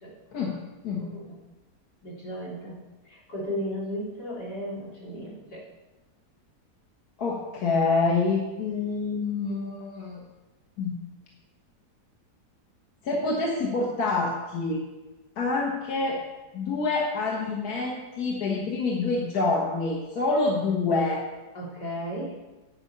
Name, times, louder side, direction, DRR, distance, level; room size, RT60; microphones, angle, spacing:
voice 1, 1.0-1.4 2.0-5.7 21.5-22.4, equal, 90° left, -4 dB, 3.9 m, -35 dB
voice 2, 7.2-10.2 10.8-11.0 13.0-14.8 15.4-16.2 16.5-21.2, left 3 dB, 70° left, -2 dB, 1.9 m, -26 dB
8.8 x 8.8 x 5.6 m, 1.1 s
omnidirectional pair, 1.7 m